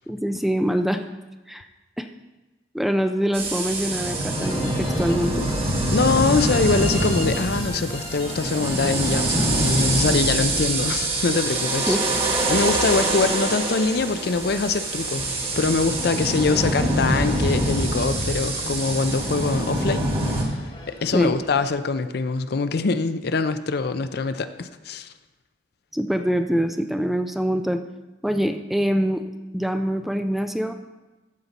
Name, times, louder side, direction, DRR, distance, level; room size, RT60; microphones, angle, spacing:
voice 1, 0.1-1.0 1.5-1.7 2.0-2.1 2.7-5.5 11.9-12.0 21.1-21.3 25.9-27.8 28.2-29.2 29.5-30.7, equal, ahead, 7 dB, 0.3 m, -24 dB
sound 1, 3.3-20.4, right 2 dB, 30° right, 1.6 m, -25 dB
sound 2, 4.3-21.7, left 1 dB, 30° left, 1.3 m, -38 dB
voice 2, 5.9-12.0 12.5-25.1, left 4 dB, 60° left, 11 dB, 0.5 m, -24 dB
14.0 x 5.3 x 4.1 m, 1.1 s
head